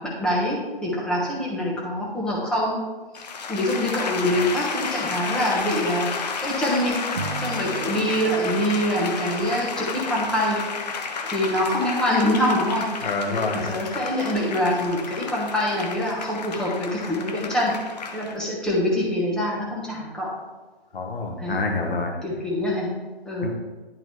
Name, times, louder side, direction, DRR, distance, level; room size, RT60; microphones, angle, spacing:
voice 1, 0.0-2.8 3.5-7.0 7.4-10.6 11.2-17.7 18.1-20.3 21.4-21.6 22.2-22.9 23.2-23.5, left 1 dB, ahead, -5 dB, 1.0 m, -25 dB
sound 1, 3.2-18.4, left 5 dB, 40° left, 0.7 m, -32 dB
Acoustic guitar / Strum, 7.1-10.4, right 4 dB, 30° right, 0.6 m, -37 dB
voice 2, 13.0-13.8 20.9-22.2 23.4-23.5, left 3 dB, 60° left, 2 dB, 1.3 m, -27 dB
10.5 x 3.8 x 3.1 m, 1.3 s
figure-of-eight pair, 140°, 31 cm